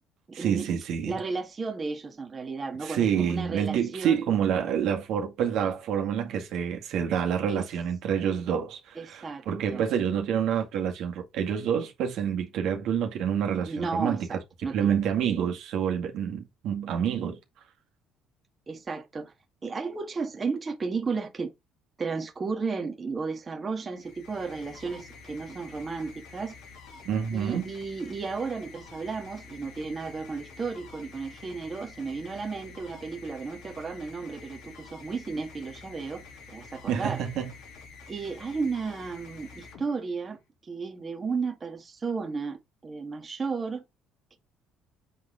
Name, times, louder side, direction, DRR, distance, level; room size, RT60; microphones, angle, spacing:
voice 1, 0.3-1.1 2.8-14.3 14.7-17.4 27.1-27.7 36.9-37.5, right 8 dB, 65° right, 2.0 m, -28 dB
voice 2, 1.1-4.2 7.5-7.6 8.9-9.5 9.7-9.8 13.7-15.0 18.7-19.3 19.6-21.5 22.0-26.5 27.3-36.2 36.5-37.2 38.1-42.6 42.8-43.8 44.3-44.4, right 4 dB, 25° right, 1.8 m, -33 dB
sound 1, 23.9-40.4, left 4 dB, 75° left, 3.0 m, -48 dB
7.3 x 4.0 x 3.8 m
cardioid pair, 110°, 0 cm